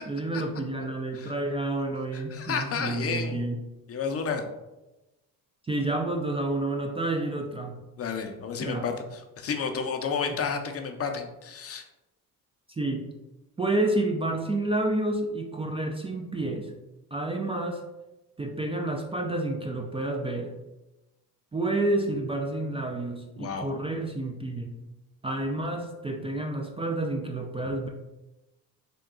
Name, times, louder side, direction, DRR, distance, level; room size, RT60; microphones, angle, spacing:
voice 1, 0.1-3.6 5.6-7.8 8.6-8.9 12.7-13.1 13.6-16.7 17.1-17.8 18.4-20.5 21.5-24.8 25.2-27.9, right 2 dB, 15° right, 1 dB, 0.3 m, -29 dB
voice 2, 2.1-3.5 3.9-4.4 8.0-11.8 23.4-23.7, left 5 dB, 40° left, 5 dB, 0.5 m, -31 dB
3.7 x 2.2 x 3.7 m, 1.0 s
cardioid pair, 85°, 37 cm